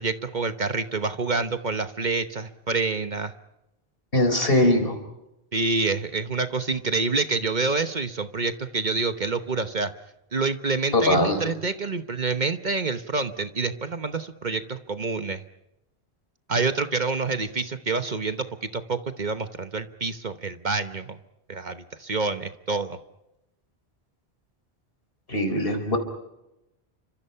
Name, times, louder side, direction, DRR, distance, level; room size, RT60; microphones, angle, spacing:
voice 1, 0.0-3.3 5.5-9.9 10.3-15.4 16.5-21.2 21.5-23.0, right 3 dB, 45° right, 9 dB, 1.2 m, -27 dB
voice 2, 4.1-5.0 10.9-11.4 25.3-26.0, left 1 dB, 65° left, 7 dB, 4.5 m, -21 dB
30.0 x 25.5 x 5.7 m, 0.89 s
omnidirectional pair, 1.1 m